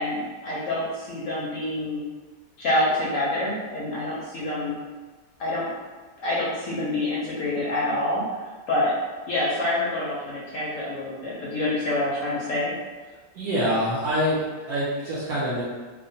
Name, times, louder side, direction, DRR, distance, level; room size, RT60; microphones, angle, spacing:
voice 1, 0.0-2.0 2.6-4.8 5.4-5.7 6.2-8.2 8.7-8.9 9.3-12.7, left 1 dB, 70° left, -7 dB, 0.8 m, -27 dB
voice 2, 13.3-15.6, equal, 70° right, -8 dB, 0.9 m, -25 dB
2.8 x 2.0 x 2.6 m, 1.3 s
omnidirectional pair, 1.8 m